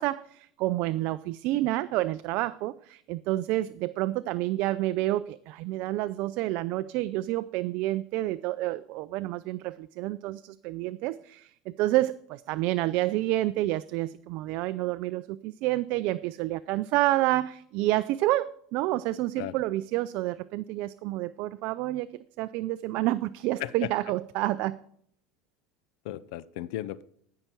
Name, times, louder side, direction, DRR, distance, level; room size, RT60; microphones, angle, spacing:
voice 1, 0.0-22.1 22.4-24.8, right 16 dB, 60° right, 13 dB, 0.3 m, -29 dB
voice 2, 23.6-23.9 26.0-27.0, left 14 dB, 75° left, 18 dB, 0.5 m, -35 dB
14.0 x 5.7 x 4.5 m, 0.65 s
supercardioid pair, 115°, 3 cm